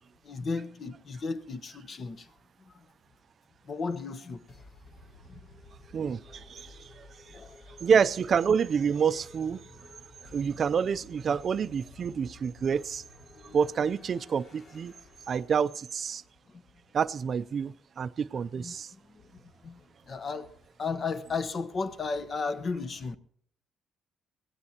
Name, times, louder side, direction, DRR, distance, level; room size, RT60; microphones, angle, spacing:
voice 1, 0.2-2.3 2.7-2.8 3.6-4.4 7.3-7.6 13.5-13.6 16.5-16.6 18.6-18.7 19.1-19.2 19.6-19.8 20.1-23.2, left 4 dB, 45° left, 1.0 m, -34 dB
sound 1, 4.5-15.9, left 2 dB, 60° left, 2.8 m, -54 dB
voice 2, 5.9-7.0 7.8-9.6 10.3-13.0 13.5-14.9 15.3-16.2 16.9-18.9, right 7 dB, 50° right, 0.5 m, -28 dB
22.5 x 17.0 x 2.9 m
cardioid pair, 90°, 0 cm